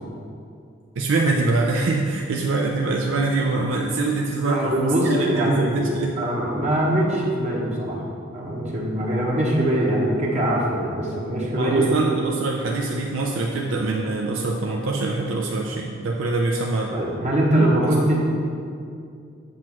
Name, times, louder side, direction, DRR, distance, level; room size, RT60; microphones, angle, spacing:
voice 1, 1.0-6.2 11.5-16.9 17.6-17.9, right 3 dB, 90° right, -1 dB, 0.5 m, -24 dB
voice 2, 4.4-5.8 6.2-8.0 8.3-11.9 16.9-18.2, right 1 dB, 40° right, -3 dB, 1.0 m, -22 dB
8.0 x 3.0 x 5.9 m, 2.4 s
head